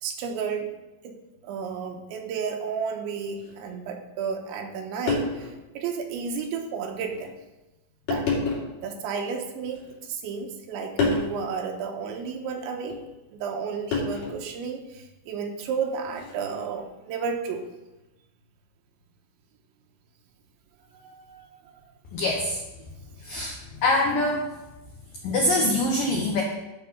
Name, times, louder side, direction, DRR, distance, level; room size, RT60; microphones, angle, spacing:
voice 1, 0.0-0.7 1.0-1.2 1.4-7.3 8.1-8.3 8.8-13.0 13.3-17.7 20.9-21.7 23.3-23.5, right 6 dB, 80° right, 3 dB, 3.2 m, -32 dB
sound 1, 3.4-3.5 4.6-4.7 5.1-5.6 6.1-6.2 7.1-7.3 8.1-8.8 9.6-10.3 11.0-11.3 12.9-13.1 13.9-14.5 16.1-16.4, left 3 dB, 60° left, 4.6 m, -28 dB
voice 2, 22.1-22.6 23.2-23.5 23.8-24.5 25.2-26.4, left 1 dB, 80° left, 0 dB, 2.0 m, -24 dB
11.0 x 5.8 x 5.8 m, 1.0 s
omnidirectional pair, 5.4 m